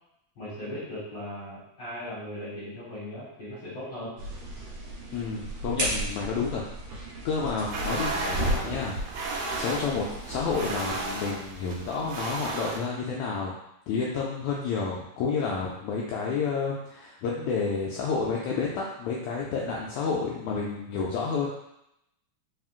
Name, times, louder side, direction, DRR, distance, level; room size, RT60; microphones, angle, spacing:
voice 1, 0.3-4.1, left 1 dB, 50° left, -8 dB, 1.4 m, -38 dB
sound 1, 4.2-11.1, right 1 dB, 55° right, 1.7 m, -34 dB
voice 2, 5.1-6.6 7.2-13.5 13.9-21.5, left 5 dB, 80° left, -3 dB, 1.7 m, -30 dB
sound 2, 7.6-12.8, right 2 dB, 80° right, 1.4 m, -34 dB
4.7 x 3.5 x 2.4 m, 0.81 s
omnidirectional pair, 3.6 m